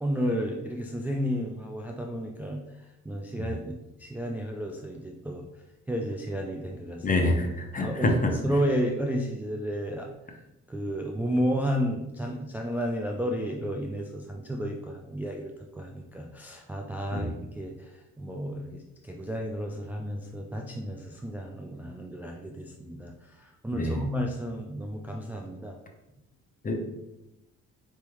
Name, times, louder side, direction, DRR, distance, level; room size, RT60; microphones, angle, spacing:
voice 1, 0.0-5.4 5.9-7.1 7.8-10.1 10.7-25.8, equal, 5° right, 0 dB, 0.4 m, -32 dB
voice 2, 7.0-8.3 17.1-17.3 23.8-24.0 26.6-26.8, left 2 dB, 30° left, 3 dB, 0.8 m, -26 dB
4.4 x 3.5 x 3.0 m, 0.94 s
cardioid pair, 90°, 30 cm